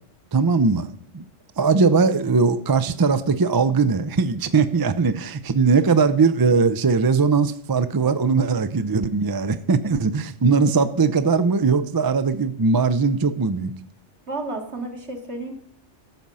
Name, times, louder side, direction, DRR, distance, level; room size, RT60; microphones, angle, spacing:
voice 1, 0.3-1.2 1.6-13.7, right 4 dB, 35° right, 11 dB, 0.4 m, -20 dB
voice 2, 14.3-15.5, right 2 dB, 70° right, 2 dB, 2.1 m, -31 dB
13.5 x 7.5 x 5.5 m, 0.68 s
omnidirectional pair, 1.2 m